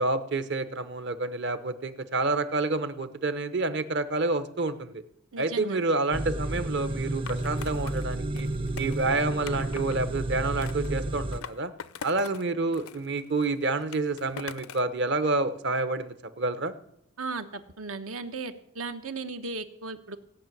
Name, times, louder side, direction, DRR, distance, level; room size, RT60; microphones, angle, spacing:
voice 1, 0.0-5.0 5.4-8.5 8.8-11.7 12.0-16.7, right 3 dB, 55° right, 11 dB, 0.9 m, -28 dB
voice 2, 5.3-5.8 17.2-20.2, right 3 dB, 85° right, 8 dB, 1.2 m, -36 dB
sound 1, 6.1-11.4, right 1 dB, 25° right, 0.6 m, -31 dB
Skateboard, 7.3-10.0 10.6-12.5 12.7-14.9, left 7 dB, 85° left, 0.6 m, -43 dB
17.0 x 5.9 x 9.2 m, 0.77 s
head